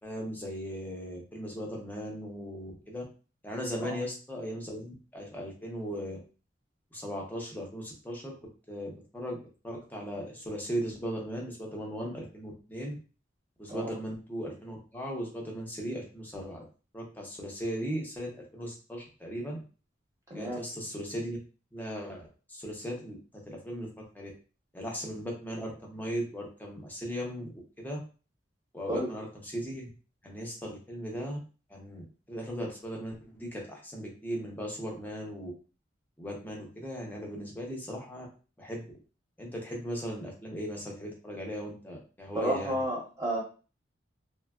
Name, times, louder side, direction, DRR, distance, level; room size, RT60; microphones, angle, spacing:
voice 1, 0.0-3.0 3.4-6.2 6.9-8.3 8.7-9.4 9.6-12.9 13.6-16.6 16.9-19.6 20.3-21.4 21.7-23.9 24.1-24.3 24.7-27.5 27.8-28.0 28.7-29.9 30.2-31.4 31.7-35.5 36.2-38.3 38.6-38.8 39.4-42.8, equal, 10° left, -1 dB, 0.7 m, -37 dB
voice 2, 42.3-43.4, right 1 dB, 15° right, -4 dB, 0.9 m, -31 dB
3.3 x 2.2 x 2.3 m, 0.35 s
head